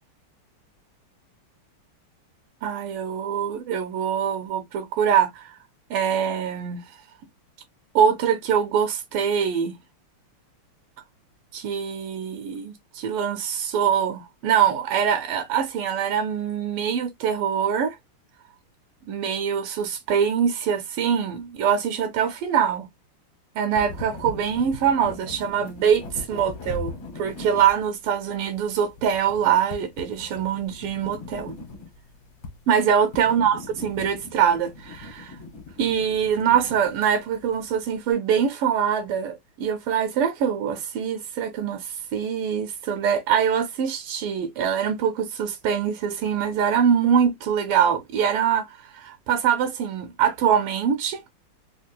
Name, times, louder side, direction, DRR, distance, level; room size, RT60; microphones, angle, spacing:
voice 1, 2.6-5.6 5.9-6.8 7.9-9.7 11.5-18.0 19.1-22.9 23.6-31.5 32.7-35.4 35.8-51.2, right 8 dB, 85° right, 1.6 m, -23 dB
sound 1, 23.7-38.0, left 3 dB, 45° left, 1.0 m, -40 dB
3.5 x 3.2 x 2.2 m
omnidirectional pair, 2.4 m